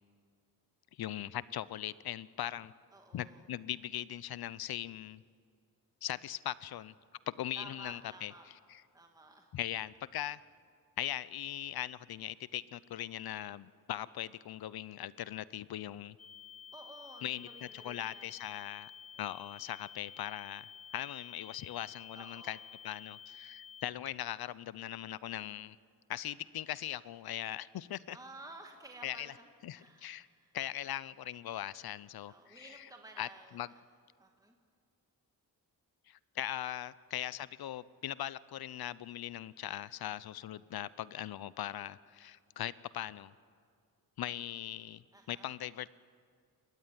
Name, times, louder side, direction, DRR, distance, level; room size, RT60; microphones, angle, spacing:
voice 1, 0.9-2.7 3.1-5.2 6.0-6.9 7.3-8.8 9.5-10.4 11.0-16.2 17.2-18.9 19.2-22.6 22.8-25.8 26.1-28.2 29.0-29.3 29.6-30.3 30.5-32.9 33.2-33.7 36.1-43.3 44.2-45.9, left 12 dB, 75° left, 19 dB, 0.6 m, -40 dB
voice 2, 2.9-3.4 7.6-8.5 8.9-9.5 16.7-18.3 22.1-22.6 28.1-29.4 29.7-30.5 32.3-33.6 34.2-34.5 45.1-45.5, right 2 dB, 10° right, 2 dB, 1.9 m, -53 dB
sound 1, 16.2-23.8, left 8 dB, 20° left, 1.1 m, -51 dB
28.5 x 15.0 x 9.5 m, 2.2 s
wide cardioid pair, 115°, 37 cm